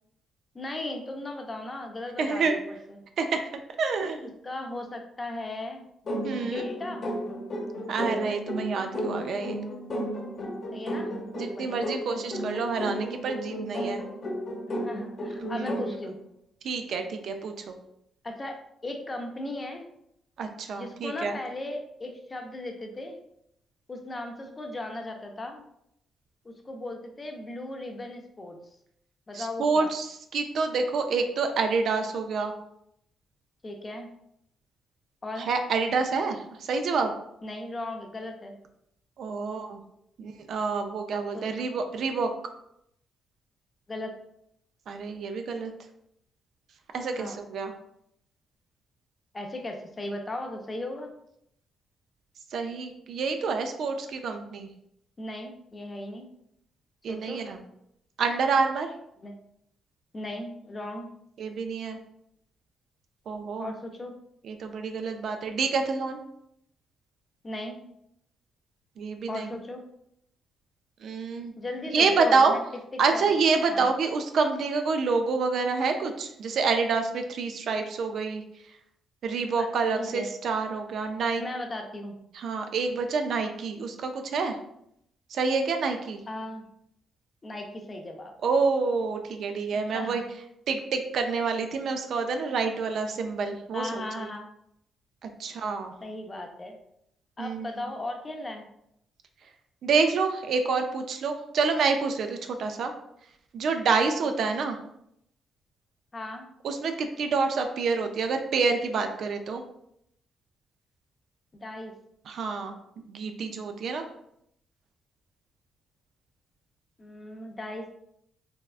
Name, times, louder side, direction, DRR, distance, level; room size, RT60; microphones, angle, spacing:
voice 1, 0.5-3.0 4.4-5.9 6.4-7.1 10.7-11.1 11.5-11.8 14.7-16.2 18.2-18.6 18.8-19.9 20.7-23.2 23.9-25.6 26.4-28.6 29.3-29.9 33.6-34.1 35.2-35.5 37.4-38.6 41.3-41.7 43.9-44.1 47.2-47.4 49.3-51.1 55.2-56.3 57.1-57.4 59.2-59.3 60.1-61.1 63.6-64.2 67.4-67.8 69.3-69.8 71.6-72.6 72.9-73.4 73.7-73.9 79.6-79.7 80.0-80.3 81.4-82.2 86.3-86.7 87.4-88.3 89.9-90.2 93.7-94.5 96.0-96.8 97.4-98.6 104.4-104.5 106.1-106.5 111.5-111.9 117.0-118.0, left 2 dB, 30° left, 4 dB, 0.5 m, -37 dB
voice 2, 2.2-2.5 3.2-4.3 6.2-6.7 7.9-9.6 11.3-14.0 15.4-15.7 16.6-17.8 20.4-21.4 29.3-32.5 35.4-37.1 39.2-39.8 40.2-42.3 44.9-45.7 46.9-47.7 52.5-54.7 57.0-57.6 58.2-58.9 61.4-62.0 63.3-63.7 64.4-66.2 69.0-69.5 71.0-71.5 71.9-72.5 73.0-78.4 79.2-81.4 82.3-84.6 85.3-86.2 88.4-90.2 90.7-94.3 95.2-95.9 97.4-97.8 99.8-102.9 103.5-104.8 106.6-109.6 112.3-114.1, right 4 dB, 65° right, 6 dB, 0.3 m, -28 dB
sound 1, 6.0-16.0, equal, 50° left, 0.9 m, -33 dB
3.4 x 2.2 x 2.4 m, 0.75 s
cardioid pair, 90°, 0 cm